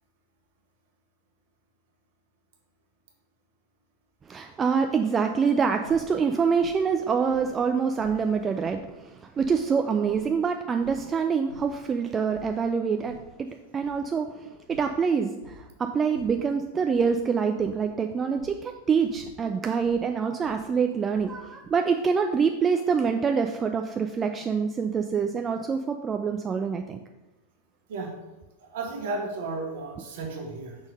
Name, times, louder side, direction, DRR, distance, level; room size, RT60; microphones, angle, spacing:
voice 1, 4.3-13.5 13.7-27.0, right 6 dB, 20° right, 5 dB, 0.3 m, -26 dB
sound 1, 5.8-7.0 7.3-7.5 7.8-8.2 8.6-8.8 9.2-11.1 11.4-11.7 12.0-12.6 12.9-13.3 13.8-15.6 16.1-17.1 17.4-17.9 18.4-18.6 19.0-20.0 20.4-21.3, left 2 dB, 90° left, 2.4 m, -49 dB
voice 2, 28.6-30.8, right 3 dB, 55° right, 1 dB, 1.4 m, -33 dB
5.5 x 4.4 x 5.3 m, 1.1 s
figure-of-eight pair, 90°, 0 cm